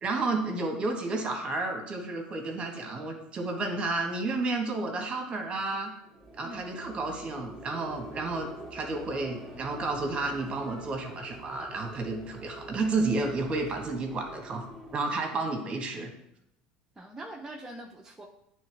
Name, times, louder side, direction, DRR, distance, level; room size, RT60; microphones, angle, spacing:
voice 1, 0.0-5.9 6.4-14.7 14.9-16.1, right 3 dB, 30° right, 3 dB, 1.4 m, -31 dB
sound 1, 6.0-15.3, right 2 dB, 10° left, 1.7 m, -45 dB
voice 2, 6.4-6.8 17.0-18.2, right 1 dB, 15° right, -2 dB, 0.7 m, -43 dB
8.9 x 3.4 x 3.4 m, 0.80 s
supercardioid pair, 95°, 4 cm